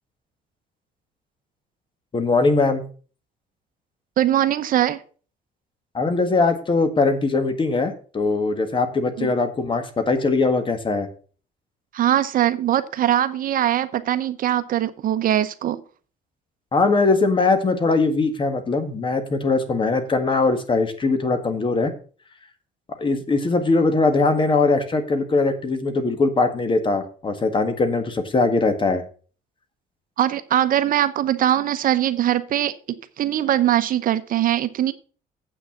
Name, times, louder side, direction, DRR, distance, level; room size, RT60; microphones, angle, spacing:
voice 1, 2.1-2.8 5.9-11.1 16.7-21.9 23.0-29.0, left 3 dB, 30° left, 9 dB, 1.7 m, -21 dB
voice 2, 4.2-5.0 9.2-9.3 11.9-15.8 30.2-34.9, right 11 dB, 55° right, 12 dB, 0.8 m, -21 dB
8.1 x 6.3 x 7.0 m, 0.40 s
cardioid pair, 110°, 17 cm